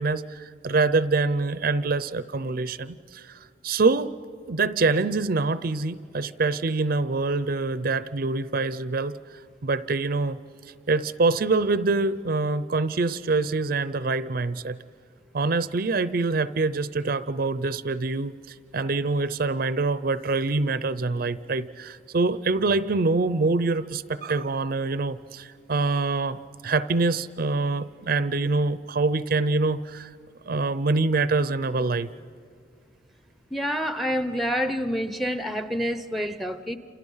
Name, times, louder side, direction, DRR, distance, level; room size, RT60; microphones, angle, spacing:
voice 1, 0.0-4.1 4.5-9.2 9.6-10.4 10.9-14.8 15.3-26.4 26.6-30.1 30.5-32.1, right 3 dB, 50° right, 15 dB, 0.6 m, -25 dB
voice 2, 33.5-36.8, equal, ahead, 11 dB, 0.7 m, -27 dB
29.5 x 28.0 x 5.6 m, 2.3 s
head